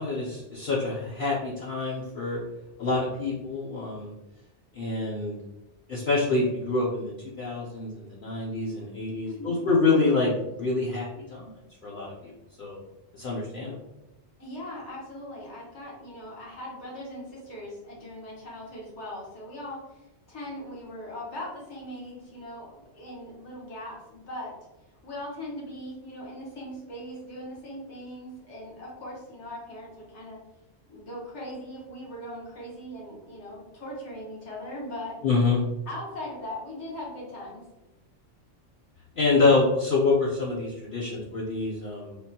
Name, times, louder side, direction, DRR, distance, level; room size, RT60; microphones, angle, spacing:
voice 1, 0.0-2.4 2.8-4.1 4.7-5.4 5.9-7.1 7.4-11.5 11.8-12.3 12.6-12.8 13.1-13.8 35.2-35.6 39.2-42.2, left 3 dB, 55° left, -6 dB, 0.7 m, -26 dB
voice 2, 9.2-9.7 14.4-24.6 25.0-30.4 30.9-35.2 35.9-37.6, left 1 dB, 75° left, -5 dB, 1.4 m, -39 dB
3.5 x 2.1 x 2.7 m, 0.97 s
omnidirectional pair, 1.2 m